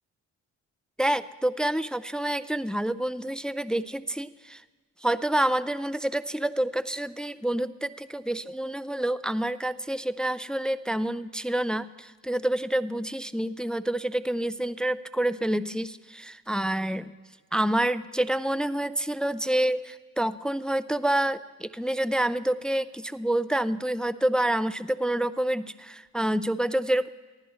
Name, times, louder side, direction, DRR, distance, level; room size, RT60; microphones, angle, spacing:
voice 1, 1.0-4.6 5.0-17.1 17.5-27.1, right 1 dB, 5° left, 14 dB, 0.3 m, -28 dB
23.5 x 15.0 x 3.1 m, 1.4 s
cardioid pair, 90°, 30 cm